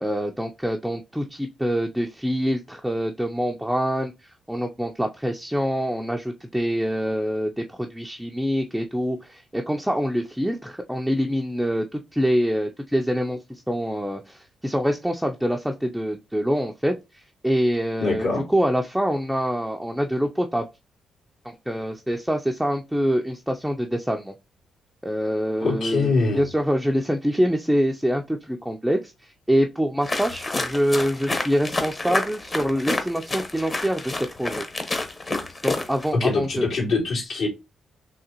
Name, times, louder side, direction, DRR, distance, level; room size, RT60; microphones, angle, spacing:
voice 1, 0.0-20.7 21.4-24.3 25.0-34.7 35.6-36.7, equal, 5° right, 0.5 m, -25 dB
voice 2, 18.0-18.4 25.6-26.4 36.1-37.5, left 3 dB, 75° left, 2.3 m, -23 dB
sound 1, 30.0-36.1, left 2 dB, 35° left, 1.0 m, -29 dB
3.7 x 2.9 x 2.9 m
supercardioid pair, 60°, 0 cm